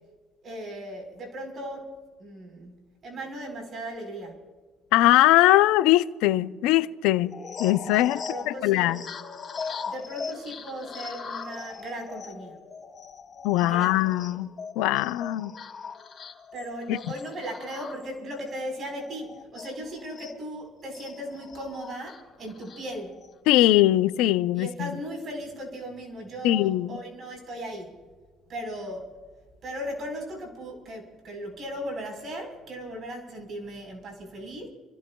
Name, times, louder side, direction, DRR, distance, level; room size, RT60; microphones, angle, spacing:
voice 1, 0.4-1.9 2.2-2.7 3.0-4.4 8.1-9.0 9.8-12.6 13.6-14.4 16.5-23.1 24.6-27.9 28.5-29.1 29.6-34.7, equal, 50° right, 4.3 m, -37 dB
voice 2, 4.9-7.3 7.6-9.0 13.4-14.5 14.8-15.5 16.9-17.0 23.5-24.9 26.4-27.0, left 15 dB, 80° left, 0.5 m, -21 dB
sound 1, 7.2-20.4 20.9-23.3, left 5 dB, 45° left, 2.6 m, -40 dB
30.0 x 15.5 x 2.3 m
supercardioid pair, 70°, 0 cm